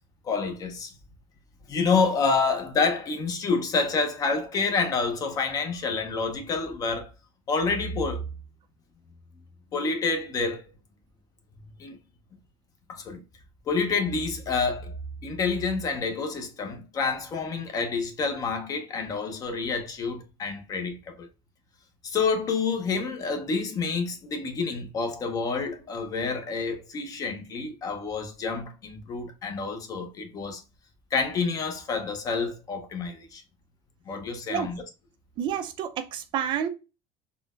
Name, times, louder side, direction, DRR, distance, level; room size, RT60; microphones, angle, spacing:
voice 1, 0.2-0.9 1.7-7.1 7.5-8.2 9.7-10.7 11.8-12.0 12.9-13.2 13.7-21.3 22.0-30.6 31.1-33.4 34.1-34.8, left 4 dB, 30° left, 0.6 m, -28 dB
voice 2, 35.4-36.7, right 8 dB, 40° right, 0.4 m, -29 dB
3.7 x 2.1 x 2.3 m
cardioid pair, 150°, 12 cm